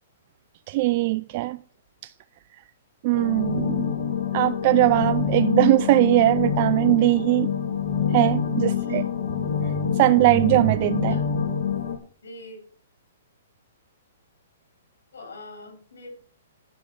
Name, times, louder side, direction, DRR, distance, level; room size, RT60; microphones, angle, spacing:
voice 1, 0.7-1.6 2.0-2.1 3.0-3.9 4.3-7.5 8.1-9.0 9.5-11.2, right 18 dB, 35° right, 0.4 m, -21 dB
sound 1, 3.1-12.0, left 7 dB, 60° left, 2.2 m, -26 dB
voice 2, 12.2-12.6 15.1-16.2, left 2 dB, 85° left, 4.0 m, -42 dB
10.0 x 6.7 x 6.9 m
hypercardioid pair, 155°, 0 cm